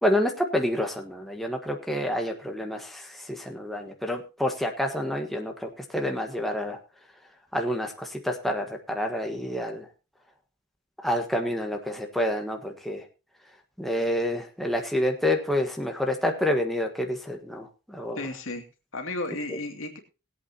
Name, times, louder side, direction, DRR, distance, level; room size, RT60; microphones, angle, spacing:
voice 1, 0.0-6.8 7.5-9.9 11.0-13.0 13.8-18.2 19.5-19.6, left 1 dB, ahead, 2 dB, 1.5 m, -28 dB
voice 2, 18.2-18.6 18.9-20.0, left 2 dB, 60° left, 4 dB, 2.6 m, -33 dB
21.0 x 8.5 x 2.9 m, 0.31 s
head